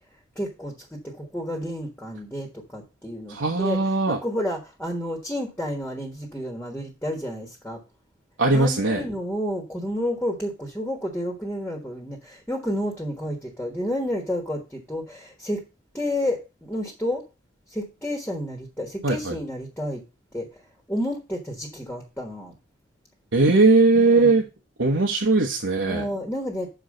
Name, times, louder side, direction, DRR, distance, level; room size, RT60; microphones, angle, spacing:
voice 1, 0.3-3.8 4.1-7.8 8.5-15.6 15.9-17.2 17.7-20.0 20.3-20.5 20.9-22.5 23.9-24.4 25.8-26.7, equal, 10° left, 3 dB, 1.4 m, -30 dB
voice 2, 3.3-4.2 8.4-9.0 19.0-19.4 23.3-24.4 24.8-26.0, right 3 dB, 85° right, 0 dB, 1.2 m, -19 dB
6.4 x 4.7 x 6.4 m, 0.28 s
head